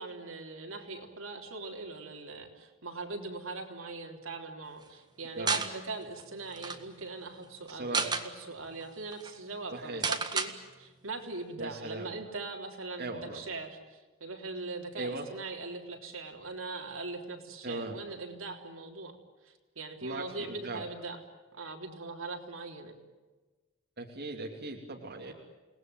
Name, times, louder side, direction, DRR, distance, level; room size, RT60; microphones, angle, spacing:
voice 1, 0.0-19.2 19.4-21.2 21.5-23.0, right 3 dB, 70° right, 2 dB, 3.6 m, -41 dB
sound 1, 5.5-5.7 6.2-6.3 6.5-6.8 7.7-8.3 8.8-8.9 9.1-9.3 10.0-10.5, right 4 dB, 20° right, 1.7 m, -30 dB
voice 2, 7.7-8.1 9.7-10.1 11.6-12.1 13.0-13.4 14.9-15.3 17.6-18.0 20.0-20.8 24.0-25.3, right 2 dB, 50° right, -1 dB, 2.9 m, -39 dB
29.5 x 19.5 x 9.4 m, 1.3 s
head